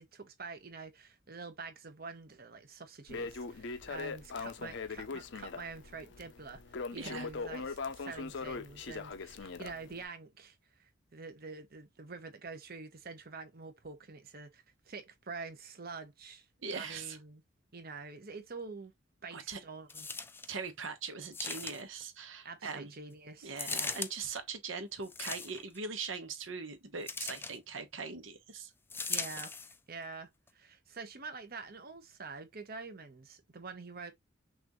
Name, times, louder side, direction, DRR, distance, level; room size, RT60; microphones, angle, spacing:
voice 1, 0.0-6.6 6.9-16.5 16.7-17.4 17.7-18.9 19.2-20.1 22.4-23.5 29.1-29.5 29.9-34.1, right 4 dB, 50° right, 1.0 m, -46 dB
Crackle, 3.1-10.0, left 4 dB, 65° left, 0.6 m, -41 dB
voice 2, 7.0-7.3 16.6-17.2 19.3-19.6 20.5-22.9 23.4-28.7, right 5 dB, 80° right, 1.1 m, -41 dB
sound 1, 19.9-20.5 21.3-22.0 23.6-24.1 25.0-25.8 27.1-27.6 28.9-29.8 30.5-30.6, left 4 dB, 10° left, 0.4 m, -38 dB
6.0 x 2.6 x 3.0 m
head